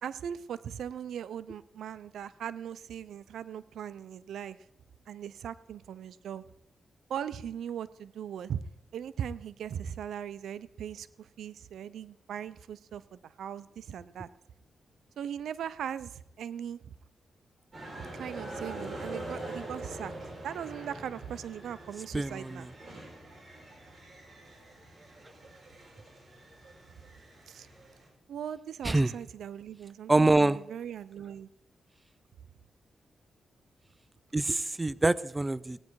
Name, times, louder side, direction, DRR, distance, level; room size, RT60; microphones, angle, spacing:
voice 1, 0.0-4.6 5.1-6.4 7.1-8.6 8.9-14.3 15.2-16.8 18.2-20.1 20.4-22.7 27.5-27.7 28.3-31.5, right 9 dB, 90° right, 15 dB, 0.5 m, -39 dB
sound 1, 17.7-28.1, right 2 dB, 35° right, 5.0 m, -44 dB
voice 2, 22.1-22.6 28.8-29.1 30.1-30.6 34.3-35.8, right 2 dB, 15° right, 15 dB, 0.4 m, -25 dB
18.0 x 9.6 x 4.7 m, 0.83 s
cardioid pair, 105°, 0 cm